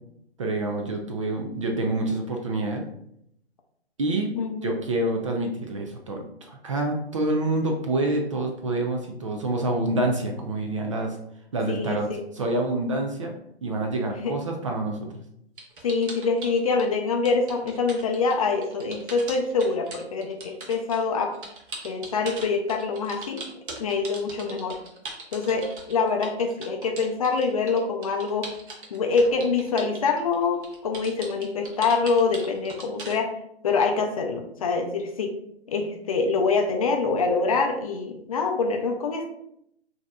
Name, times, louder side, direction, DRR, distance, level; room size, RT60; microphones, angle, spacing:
voice 1, 0.4-2.8 4.0-4.4 4.6-11.2 11.5-13.3 13.6-15.1, right 2 dB, 30° right, 2 dB, 0.4 m, -27 dB
voice 2, 4.4-4.7 11.7-12.2 14.2-14.3 15.8-21.3 21.8-23.4 23.8-24.8 25.3-28.5 28.9-33.3 33.6-35.3 35.7-39.2, left 4 dB, 35° left, 3 dB, 0.5 m, -25 dB
sound 1, 15.6-16.9 17.2-33.2, right 3 dB, 50° right, 1.1 m, -40 dB
6.1 x 2.7 x 2.2 m, 0.74 s
figure-of-eight pair, 130°, 33 cm